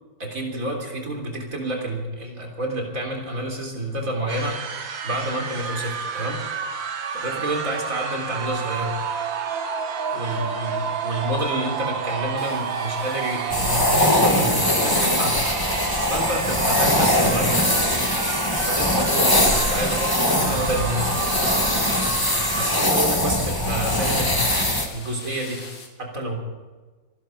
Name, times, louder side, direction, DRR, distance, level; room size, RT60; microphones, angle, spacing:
voice 1, 0.2-4.8 5.0-6.4 7.1-9.0 10.1-15.4 16.1-17.5 18.7-21.1 21.4-21.6 22.6-24.6 24.9-25.6 26.0-26.4, right 1 dB, 40° right, 1 dB, 3.8 m, -29 dB
sound 1, 4.3-22.9, right 6 dB, 65° right, 2.0 m, -30 dB
sound 2, 12.4-25.9, left 4 dB, 80° left, 3.1 m, -42 dB
sound 3, 13.5-24.9, left 1 dB, 10° left, 1.4 m, -21 dB
25.0 x 11.0 x 5.2 m, 1.3 s
omnidirectional pair, 2.2 m